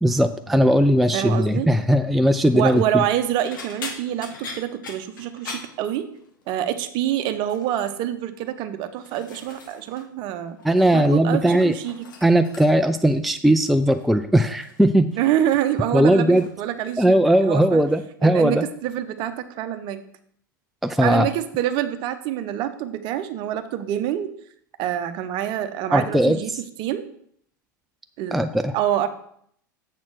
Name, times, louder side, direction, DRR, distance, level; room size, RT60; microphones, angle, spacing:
voice 1, 0.0-3.0 10.6-11.7 12.2-15.2 15.9-16.5 17.0-18.7 20.8-21.3 25.9-26.4 28.3-28.7, right 1 dB, ahead, 9 dB, 0.3 m, -18 dB
voice 2, 1.1-1.7 2.5-6.1 6.5-10.6 10.9-12.1 15.2-17.2 17.4-17.8 18.2-20.0 21.0-24.3 24.8-26.5 26.8-27.0 28.2-28.4 28.7-29.1, right 11 dB, 45° right, 10 dB, 0.8 m, -26 dB
sound 1, 2.5-2.9 3.4-6.5 6.7-7.1 7.4-8.0 8.6-10.1 10.3-11.2 11.4-13.0 13.9-14.1 14.6-16.6 16.9-17.4 17.8-18.0 19.3-19.4, left 4 dB, 70° left, 1.4 m, -41 dB
7.3 x 4.3 x 6.0 m, 0.67 s
hypercardioid pair, 95°, 11 cm